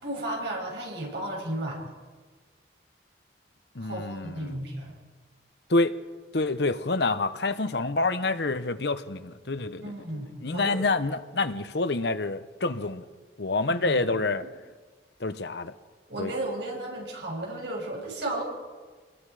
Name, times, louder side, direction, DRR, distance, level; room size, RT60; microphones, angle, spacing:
voice 1, 0.0-1.9 3.8-5.0 9.8-10.9 13.8-14.0 16.1-18.4, right 1 dB, 70° right, 7.2 m, -34 dB
voice 2, 3.7-4.6 5.7-6.0 6.3-9.8 10.4-13.0 13.4-14.4 15.2-15.7 16.2-16.3, left 3 dB, 65° left, 1.0 m, -27 dB
26.0 x 21.5 x 5.0 m
head